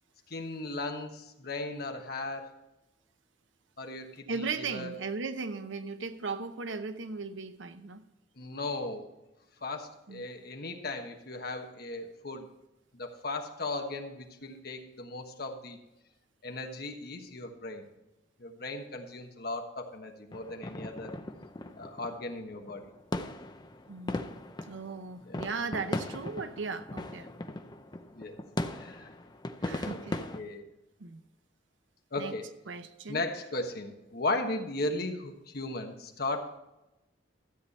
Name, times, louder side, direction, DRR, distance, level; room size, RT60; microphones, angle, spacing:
voice 1, 0.3-2.5 3.8-4.9 8.4-9.1 9.6-12.5 12.9-15.8 16.4-17.9 18.4-21.1 21.8-22.9 25.2-25.5 28.1-28.4 28.7-29.1 29.8-30.0 30.4-30.7 32.1-32.5 33.1-36.6, left 2 dB, 55° left, 4 dB, 1.3 m, -36 dB
voice 2, 4.3-8.0 10.1-10.2 23.9-24.4 24.7-27.3 29.6-30.3 31.0-31.2 32.2-32.3 32.7-33.3, right 4 dB, 80° right, 10 dB, 0.8 m, -37 dB
sound 1, 20.3-30.4, left 1 dB, 20° left, 0.6 m, -38 dB
13.0 x 8.4 x 4.2 m, 0.96 s
head